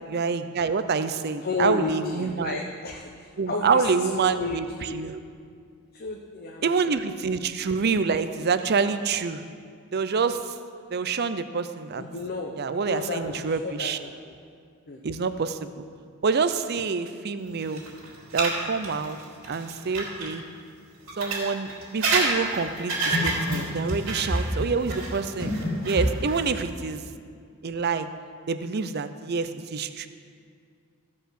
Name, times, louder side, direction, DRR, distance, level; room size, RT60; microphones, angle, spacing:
voice 1, 0.1-2.6 3.4-5.2 6.6-9.4 9.9-10.4 10.9-12.0 12.6-14.0 15.0-15.7 16.2-17.8 18.3-19.2 19.5-20.4 21.2-25.5 25.8-27.0 27.6-28.1 28.5-30.1, right 5 dB, 50° right, 11 dB, 0.5 m, -27 dB
voice 2, 1.4-5.0 5.9-7.0 12.0-14.4 14.9-15.0 26.4-26.5, left 3 dB, 45° left, 1 dB, 0.7 m, -33 dB
sound 1, 17.6-20.3 21.1-26.4, right 2 dB, 70° right, 2.9 m, -27 dB
15.0 x 5.4 x 6.3 m, 2.2 s
head